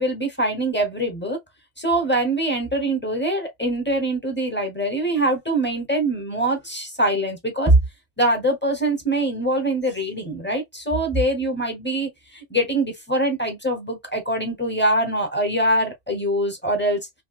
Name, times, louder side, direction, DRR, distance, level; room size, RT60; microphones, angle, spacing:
voice 1, 0.0-1.4 1.8-7.8 8.2-17.0, right 1 dB, 10° left, 0.8 m, -23 dB
3.6 x 2.2 x 2.4 m
omnidirectional pair, 1.2 m